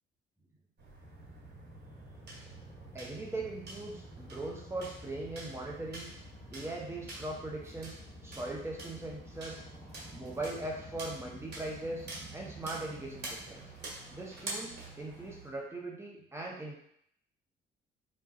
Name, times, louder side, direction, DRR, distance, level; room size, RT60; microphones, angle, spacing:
sound 1, 0.8-15.5, right 2 dB, 55° right, 1.1 m, -48 dB
sound 2, 1.0-15.4, equal, 20° left, 1.5 m, -51 dB
voice 1, 2.9-6.1 6.5-8.0 8.2-9.6 10.1-13.7 14.1-16.8, right 2 dB, 15° right, -2 dB, 0.8 m, -40 dB
2.4 x 2.2 x 3.6 m, 0.72 s
cardioid pair, 90°, 20 cm